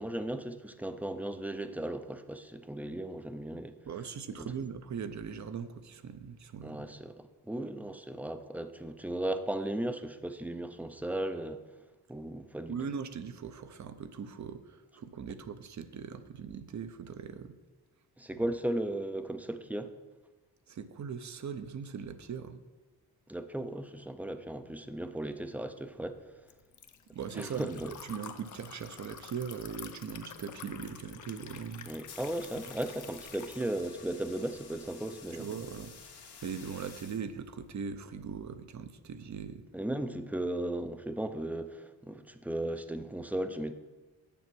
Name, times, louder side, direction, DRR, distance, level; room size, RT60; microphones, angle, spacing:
voice 1, 0.0-3.8 4.4-4.5 6.6-11.6 12.1-12.8 18.2-19.9 23.3-26.2 27.3-27.9 31.9-35.5 39.7-43.7, right 1 dB, 5° right, 9 dB, 0.4 m, -36 dB
voice 2, 3.9-6.9 12.7-17.5 20.7-22.6 27.1-31.9 35.4-35.9 36.4-39.6, right 6 dB, 50° right, 11 dB, 0.7 m, -40 dB
Liquid, 25.4-33.7, left 7 dB, 50° left, 0.7 m, -49 dB
sound 1, 31.7-37.7, left 5 dB, 90° left, 1.9 m, -52 dB
8.4 x 6.9 x 6.2 m, 1.3 s
wide cardioid pair, 135°, 38 cm